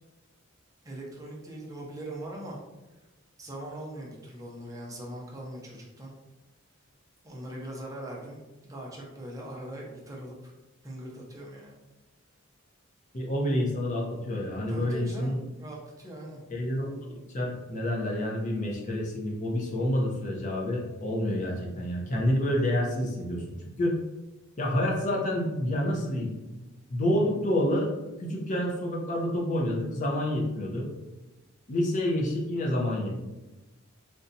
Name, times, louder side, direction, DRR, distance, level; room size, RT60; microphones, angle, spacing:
voice 1, 0.8-2.6 3.4-6.1 7.2-10.5 10.8-11.8 14.7-16.4, right 1 dB, 15° right, -3 dB, 0.5 m, -41 dB
voice 2, 13.1-15.4 16.5-17.1 17.3-23.4 23.8-23.9 24.6-26.3 26.9-27.9 28.2-30.9 31.7-33.2, left 1 dB, 35° left, -2 dB, 0.6 m, -28 dB
3.9 x 2.2 x 2.6 m, 1.1 s
head